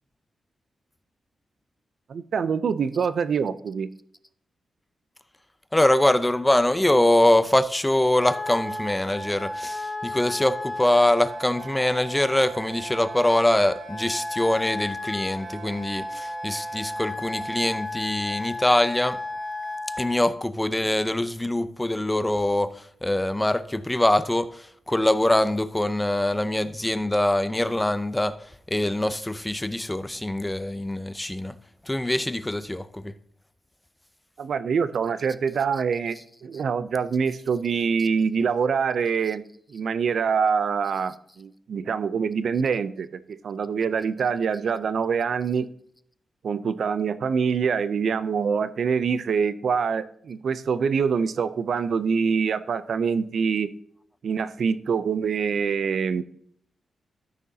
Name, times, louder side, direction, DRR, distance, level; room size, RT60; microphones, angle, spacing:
voice 1, 2.1-3.9 34.4-39.4 39.7-45.7 46.4-53.7 54.2-56.2, right 6 dB, 70° right, 0.5 m, -25 dB
voice 2, 5.7-19.2 20.0-28.4 28.7-31.5 31.9-33.1, left 1 dB, 10° left, 0.5 m, -23 dB
Wind instrument woodwind instrument, 8.2-20.2, left 1 dB, 5° right, 2.5 m, -34 dB
13.5 x 6.2 x 2.8 m
wide cardioid pair, 110°, 0 cm